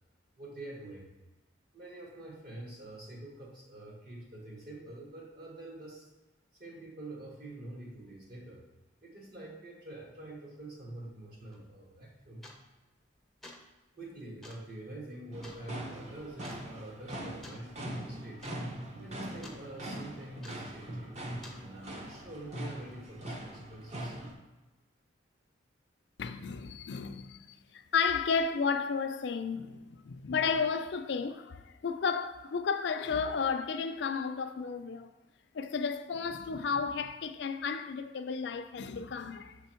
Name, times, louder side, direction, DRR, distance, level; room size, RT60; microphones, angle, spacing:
voice 1, 0.4-1.1 1.7-6.1 6.6-8.6 9.0-12.5 13.9-18.4 19.0-21.1 21.5-24.2, right 1 dB, 50° right, 1.5 m, -46 dB
sound 1, 11.5-11.6 12.4-12.8 13.2-13.7 14.4-14.7 15.4-15.6 16.4-16.7 17.4-17.7 18.0-18.1 18.3-18.6 18.9-19.6 20.4-20.8 21.4-21.6, left 1 dB, ahead, 0.5 m, -51 dB
sound 2, 15.3-24.3, right 1 dB, 35° right, 0.7 m, -42 dB
voice 2, 26.2-35.1 35.5-39.6, left 5 dB, 60° left, 0.4 m, -33 dB
6.2 x 3.5 x 4.4 m
head